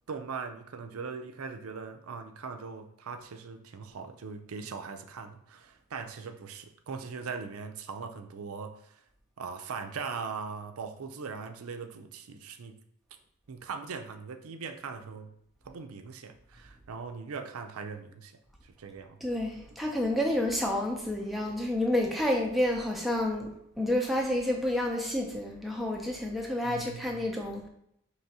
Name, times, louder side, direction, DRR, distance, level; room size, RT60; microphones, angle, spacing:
voice 1, 0.1-8.9 9.4-12.8 13.5-15.3 15.7-18.3 18.6-19.2 26.6-27.0, right 5 dB, 85° right, 0.5 m, -40 dB
voice 2, 19.2-27.7, left 1 dB, ahead, 0.6 m, -29 dB
4.6 x 3.0 x 2.8 m
head